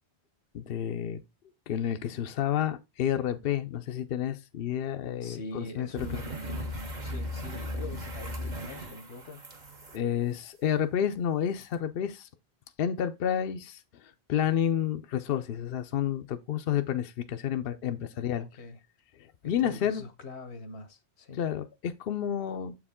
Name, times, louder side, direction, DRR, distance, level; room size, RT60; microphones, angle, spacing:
voice 1, 0.5-1.2 1.7-6.2 9.9-12.3 12.8-18.5 19.2-20.0 21.4-22.8, left 9 dB, 65° left, 0.8 m, -30 dB
voice 2, 5.2-9.5 18.3-18.8 19.4-21.4, left 2 dB, 85° left, 1.3 m, -43 dB
sound 1, 6.0-10.0 11.6-11.7, left 1 dB, 45° right, 1.2 m, -37 dB
7.2 x 4.8 x 3.6 m
omnidirectional pair, 1.1 m